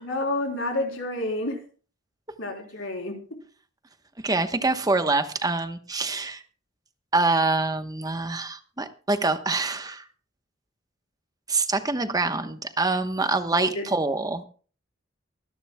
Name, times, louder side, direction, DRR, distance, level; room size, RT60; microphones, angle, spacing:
voice 1, 0.0-1.6 2.4-3.4 13.6-13.9, left 2 dB, 85° left, 3 dB, 3.6 m, -29 dB
voice 2, 4.2-6.4 7.1-10.0 11.5-14.5, right 3 dB, 20° right, 8 dB, 1.0 m, -25 dB
24.0 x 11.0 x 2.2 m, 0.39 s
head